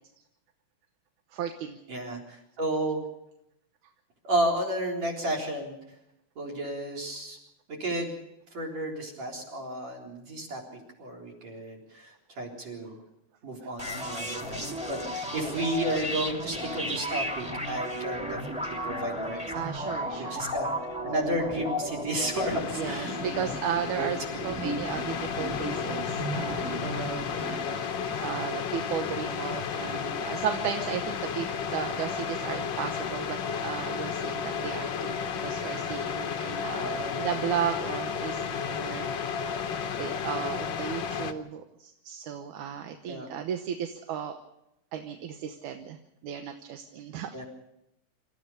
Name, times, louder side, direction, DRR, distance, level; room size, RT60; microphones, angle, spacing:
voice 1, 1.3-1.8 15.4-15.5 19.5-20.5 22.8-27.9 28.2-39.7 40.0-44.4 44.9-47.3, right 8 dB, 80° right, 6 dB, 2.5 m, -35 dB
voice 2, 1.9-3.0 4.2-5.8 6.4-7.4 7.7-8.2 8.5-10.6 11.0-13.0 13.4-14.6 14.9-19.7 20.2-20.7 21.0-23.5 24.0-24.1 27.3-27.9 36.7-37.3 43.1-43.3 47.3-47.4, right 1 dB, 60° right, 4 dB, 5.1 m, -32 dB
sound 1, 13.8-27.4, equal, 5° right, 1.4 m, -34 dB
sound 2, 22.3-41.3, left 6 dB, 70° left, 1.1 m, -33 dB
27.0 x 14.5 x 6.8 m, 0.87 s
omnidirectional pair, 3.6 m